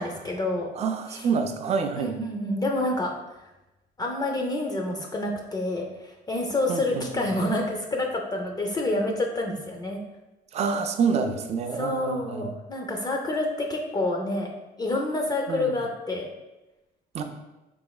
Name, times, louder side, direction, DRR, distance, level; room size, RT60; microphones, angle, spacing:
voice 1, 0.0-0.7 1.1-1.3 1.9-3.1 4.0-10.0 11.7-14.5 14.8-16.3, left 2 dB, 25° left, 1 dB, 0.4 m, -28 dB
voice 2, 0.8-2.2 6.7-7.3 10.5-12.5 15.5-15.8 17.1-17.2, right 5 dB, 40° right, 6 dB, 0.4 m, -27 dB
3.6 x 3.1 x 2.3 m, 1.0 s
cardioid pair, 110°, 17 cm